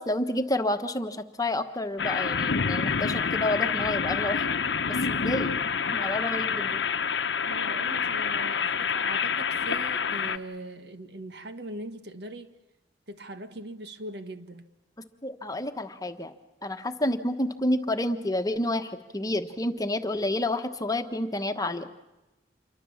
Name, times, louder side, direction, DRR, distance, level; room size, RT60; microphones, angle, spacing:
voice 1, 0.0-4.4 4.9-5.5 5.9-6.8 15.2-16.3 16.6-21.9, left 1 dB, 20° left, 1.2 m, -29 dB
sound 1, 2.0-10.4, left 6 dB, 85° left, 1.0 m, -27 dB
voice 2, 7.4-12.5 13.1-14.6, right 1 dB, 70° right, 1.6 m, -40 dB
28.0 x 23.5 x 7.2 m
head